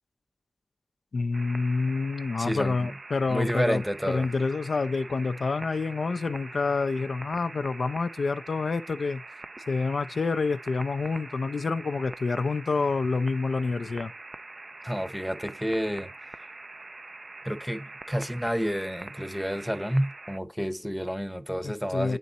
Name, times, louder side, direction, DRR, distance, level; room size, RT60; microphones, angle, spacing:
voice 1, 1.1-9.2 9.7-14.1 21.6-22.2, left 4 dB, 80° left, 0.4 m, -28 dB
sound 1, 1.3-20.4, right 2 dB, 45° right, 0.3 m, -44 dB
voice 2, 2.4-3.0 3.3-4.3 14.8-16.1 17.4-22.2, equal, ahead, 0.7 m, -30 dB
8.3 x 3.8 x 4.0 m
wide cardioid pair, 55°, 0 cm